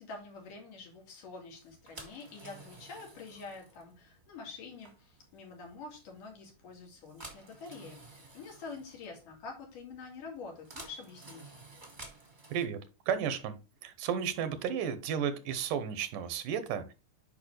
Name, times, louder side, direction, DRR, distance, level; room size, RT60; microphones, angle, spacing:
voice 1, 0.0-11.4, left 4 dB, 75° left, 1 dB, 3.8 m, -47 dB
sound 1, 1.5-12.6, right 3 dB, 20° right, 1.3 m, -53 dB
voice 2, 13.1-13.5 13.8-16.9, right 8 dB, 80° right, 12 dB, 2.5 m, -33 dB
8.6 x 5.6 x 3.2 m, 0.28 s
omnidirectional pair, 3.8 m